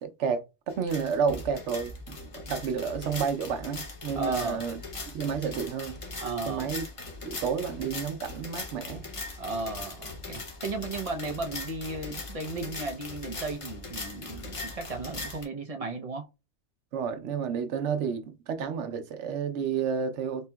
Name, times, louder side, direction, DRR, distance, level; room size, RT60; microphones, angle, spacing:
voice 1, 0.0-4.8 5.1-6.0 6.5-6.8 7.2-9.1 16.9-20.5, right 6 dB, 90° right, 1.0 m, -31 dB
sound 1, 0.7-15.4, left 3 dB, 35° left, 0.7 m, -40 dB
voice 2, 4.1-4.7 6.2-6.7 9.4-16.3, right 3 dB, 40° right, 0.6 m, -35 dB
4.2 x 2.8 x 2.2 m
omnidirectional pair, 1.2 m